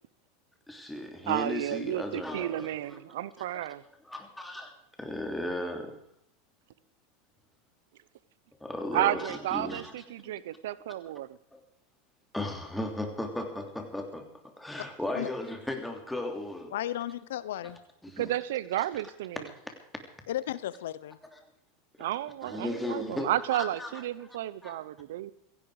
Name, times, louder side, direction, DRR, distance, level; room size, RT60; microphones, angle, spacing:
voice 1, 0.7-3.0 3.5-3.7 4.0-6.0 8.6-10.0 11.5-11.6 12.3-16.7 17.6-17.7 18.0-18.3 19.5-19.7 21.3-21.4 22.0-22.1 22.4-23.3 23.6-24.0 24.6-24.8, left 1 dB, 5° left, 4 dB, 3.0 m, -36 dB
voice 2, 1.3-3.8 8.9-11.4 18.2-19.4 22.0-25.3, right 13 dB, 75° right, 18 dB, 0.8 m, -32 dB
voice 3, 16.7-17.8 20.3-21.2, left 12 dB, 80° left, 17 dB, 0.9 m, -34 dB
17.0 x 15.5 x 5.0 m, 0.70 s
supercardioid pair, 125°, 0 cm